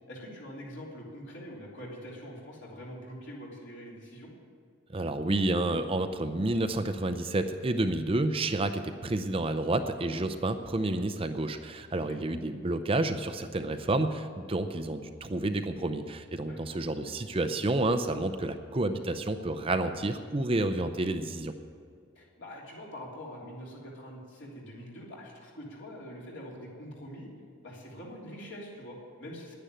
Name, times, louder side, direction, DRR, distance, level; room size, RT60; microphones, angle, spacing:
voice 1, 0.1-4.3 11.9-12.2 16.4-16.8 22.1-27.3 27.6-29.6, equal, 60° left, -3 dB, 3.3 m, -44 dB
voice 2, 4.9-21.5, right 2 dB, 25° right, 8 dB, 0.5 m, -30 dB
10.5 x 10.0 x 9.1 m, 2.2 s
head